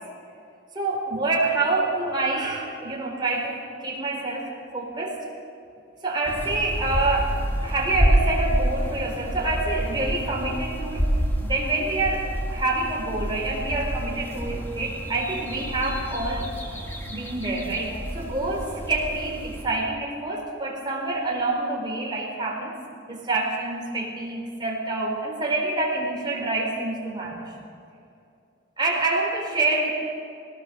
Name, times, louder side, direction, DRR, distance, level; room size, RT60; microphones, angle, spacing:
voice 1, 0.7-5.2 6.0-11.1 11.4-22.8 23.1-27.5 28.8-29.9, right 2 dB, 20° right, -1 dB, 4.2 m, -27 dB
sound 1, 6.2-19.7, equal, 10° left, 2.2 m, -28 dB
21.0 x 19.0 x 6.9 m, 2.5 s
head